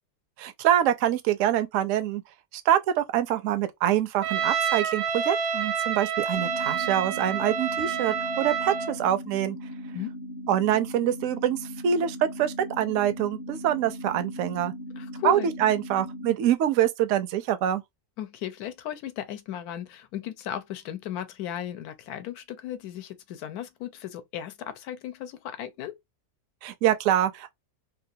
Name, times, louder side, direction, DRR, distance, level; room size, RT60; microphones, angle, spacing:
voice 1, 0.4-2.2 2.7-9.6 10.5-14.7 15.2-17.8 26.6-27.5, right 11 dB, 65° right, 0.8 m, -25 dB
Trumpet, 4.2-8.9, right 7 dB, 90° right, 1.3 m, -28 dB
sound 1, 6.3-16.3, equal, 40° left, 0.7 m, -39 dB
voice 2, 15.0-15.5 18.2-26.0, left 11 dB, 75° left, 1.1 m, -36 dB
3.0 x 2.4 x 2.6 m
omnidirectional pair, 1.7 m